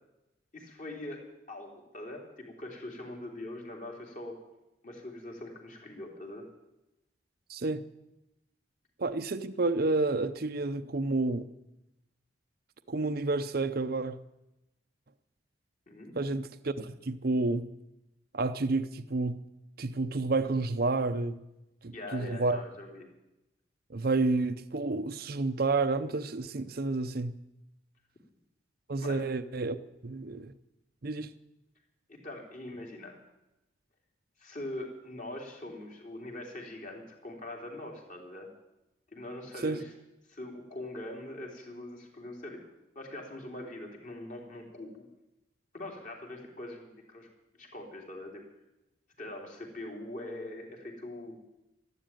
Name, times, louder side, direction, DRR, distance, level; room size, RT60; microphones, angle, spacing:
voice 1, 0.5-4.4 4.8-6.5 15.9-16.1 21.9-23.1 29.0-29.2 32.1-33.2 34.4-38.5 39.1-39.9 40.3-42.7 43.0-45.0 45.7-47.3 47.6-48.4 49.2-51.4, left 1 dB, 40° left, 3.4 m, -42 dB
voice 2, 7.5-7.8 9.0-11.5 12.9-14.2 16.2-17.6 18.3-19.4 19.8-21.4 21.8-22.6 23.9-27.3 28.9-29.8 30.0-30.5 31.0-31.3 39.6-39.8, right 3 dB, 50° right, 0.7 m, -30 dB
13.0 x 12.5 x 9.1 m
head